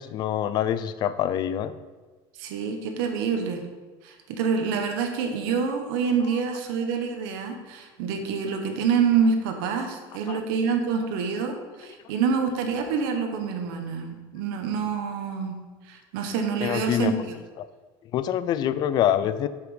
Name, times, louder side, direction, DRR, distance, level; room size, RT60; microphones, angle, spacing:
voice 1, 0.0-1.7 10.3-10.4 16.6-17.1 17.6-17.7 18.1-19.5, left 11 dB, 40° left, 14 dB, 0.4 m, -25 dB
voice 2, 2.4-3.6 4.0-15.6 15.9-17.4, right 6 dB, 85° right, 4 dB, 1.3 m, -27 dB
7.7 x 6.0 x 5.2 m, 1.3 s
cardioid pair, 155°, 11 cm